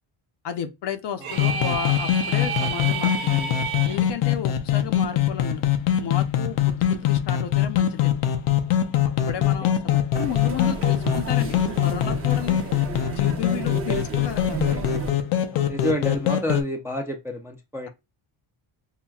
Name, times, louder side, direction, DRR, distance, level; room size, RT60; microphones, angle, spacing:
voice 1, 0.4-3.6 3.9-5.6 6.0-8.2 9.3-12.6 13.1-14.9, left 8 dB, 55° left, 0.7 m, -33 dB
sound 1, 1.2-4.0, right 5 dB, 70° right, 1.0 m, -30 dB
sound 2, 1.3-16.6, left 10 dB, 90° left, 0.8 m, -23 dB
sound 3, 10.1-15.1, right 4 dB, 25° right, 0.8 m, -32 dB
voice 2, 15.5-17.9, equal, 5° right, 0.4 m, -29 dB
5.7 x 2.2 x 2.3 m
cardioid pair, 135°, 49 cm